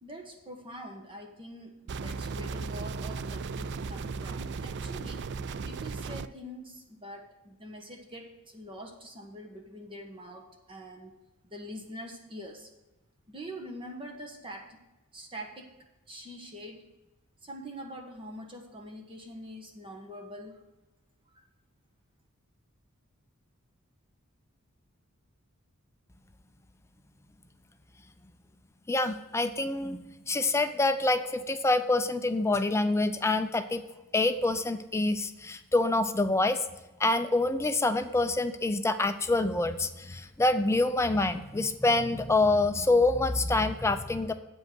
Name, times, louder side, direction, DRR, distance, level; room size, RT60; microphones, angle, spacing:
voice 1, 0.0-5.3 5.6-11.1 11.4-12.7 13.3-14.8 15.1-15.7 16.1-16.9 17.4-20.6 21.3-21.4, equal, 25° right, 2 dB, 1.2 m, -44 dB
sound 1, 1.9-6.3, right 4 dB, 50° right, 0.3 m, -36 dB
voice 2, 28.9-30.0 30.3-33.9 34.1-36.6 37.0-44.3, left 2 dB, 10° left, 9 dB, 0.4 m, -26 dB
8.3 x 5.4 x 7.6 m, 1.0 s
head